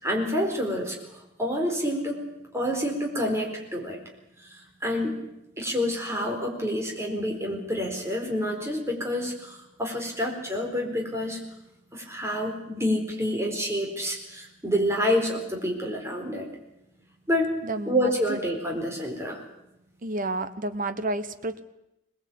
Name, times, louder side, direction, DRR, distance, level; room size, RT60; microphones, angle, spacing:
voice 1, 0.0-2.2 2.5-4.0 4.4-5.1 5.6-11.4 11.9-16.5 17.3-17.5 17.9-19.4, equal, 15° right, 1 dB, 4.3 m, -28 dB
voice 2, 17.6-18.4 20.0-21.6, right 2 dB, 40° right, 11 dB, 1.2 m, -31 dB
21.5 x 19.5 x 8.6 m, 0.86 s
head